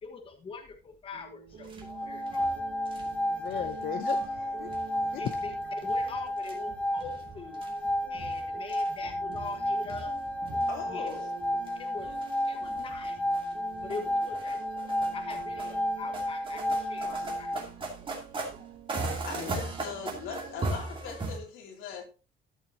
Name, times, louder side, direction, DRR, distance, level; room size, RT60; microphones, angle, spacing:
voice 1, 0.0-2.5 3.3-3.7 5.2-5.5 5.8-7.7 8.1-10.1 10.8-11.1 11.8-12.2 12.4-13.2 13.8-14.6 15.1-17.5, left 4 dB, 25° left, 1.3 m, -43 dB
sound 1, 1.1-20.9, right 8 dB, 45° right, 0.9 m, -49 dB
sound 2, 1.5-21.4, right 3 dB, 25° right, 2.5 m, -40 dB
sound 3, 1.8-17.6, left 1 dB, 5° left, 0.4 m, -32 dB
voice 2, 3.3-4.7 5.0-5.2 19.3-19.7, left 9 dB, 45° left, 0.7 m, -38 dB
voice 3, 10.7-11.3 17.0-17.5 19.2-22.0, left 6 dB, 75° left, 3.1 m, -40 dB
13.0 x 7.3 x 2.8 m
cardioid pair, 165°, 20 cm